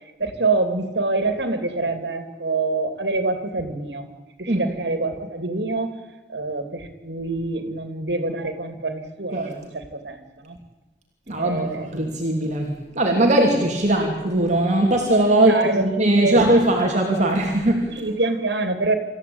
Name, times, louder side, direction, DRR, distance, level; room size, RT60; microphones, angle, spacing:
voice 1, 0.2-4.1 4.4-6.0 6.3-10.6 11.4-11.9 15.3-16.5 17.9-19.0, right 3 dB, 70° right, 8 dB, 3.0 m, -26 dB
voice 2, 11.3-18.0, right 1 dB, 40° right, 0 dB, 3.1 m, -20 dB
27.0 x 14.5 x 8.9 m, 1.2 s
head